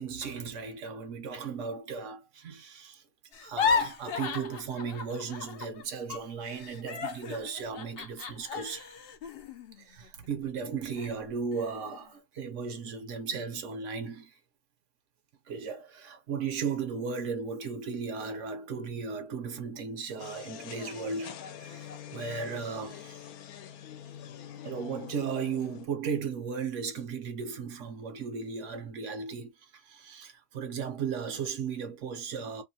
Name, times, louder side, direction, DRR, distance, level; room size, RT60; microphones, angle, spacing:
voice 1, 0.0-3.0 3.4-8.9 9.8-14.3 15.5-23.2 24.6-32.6, right 5 dB, 60° right, 0.9 m, -36 dB
sound 1, 3.3-5.8 6.1-10.5 11.0-11.1 11.5-12.0, left 6 dB, 65° left, 0.6 m, -34 dB
Working party clearing a churchyard, 20.2-25.9, left 9 dB, 80° left, 1.1 m, -45 dB
2.7 x 2.2 x 2.7 m
omnidirectional pair, 1.6 m